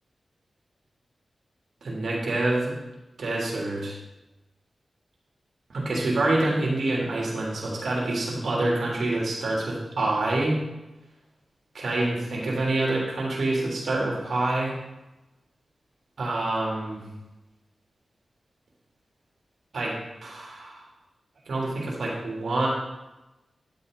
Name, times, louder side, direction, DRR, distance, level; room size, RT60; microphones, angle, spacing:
voice 1, 1.8-2.7 3.2-3.9 5.7-10.6 11.7-14.7 16.2-17.0 19.7-20.8 21.5-22.7, right 2 dB, 80° right, -4 dB, 3.3 m, -26 dB
11.5 x 8.6 x 4.1 m, 1.0 s
cardioid pair, 65°, 0 cm